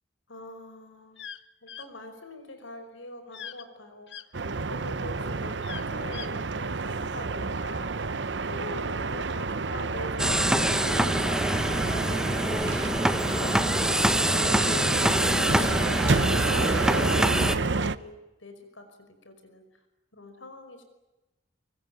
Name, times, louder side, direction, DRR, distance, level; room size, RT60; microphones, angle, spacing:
voice 1, 0.3-1.2 1.6-4.3 4.7-8.0 8.4-12.7 13.1-19.6 20.1-20.8, left 1 dB, 85° left, 8 dB, 5.4 m, -44 dB
sound 1, 1.2-1.4 1.7-1.9 3.3-3.7 4.1-4.2 5.6-6.3, left 9 dB, 65° left, 1.3 m, -41 dB
sound 2, 4.3-18.0, right 3 dB, 65° right, 0.9 m, -30 dB
sound 3, 10.2-17.6, right 1 dB, 5° right, 1.1 m, -25 dB
25.0 x 24.0 x 9.1 m, 1.0 s
head